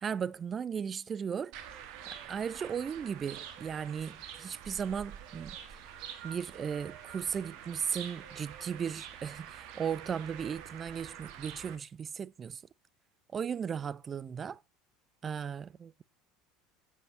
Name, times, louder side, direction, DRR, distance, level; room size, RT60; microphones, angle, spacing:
voice 1, 0.0-1.5 2.3-5.5 6.2-12.6 13.3-14.6 15.2-15.9, right 7 dB, 35° right, 0.4 m, -36 dB
sound 1, 1.5-11.8, right 9 dB, 60° right, 1.3 m, -47 dB
7.7 x 7.2 x 3.1 m
figure-of-eight pair, 70°, 0 cm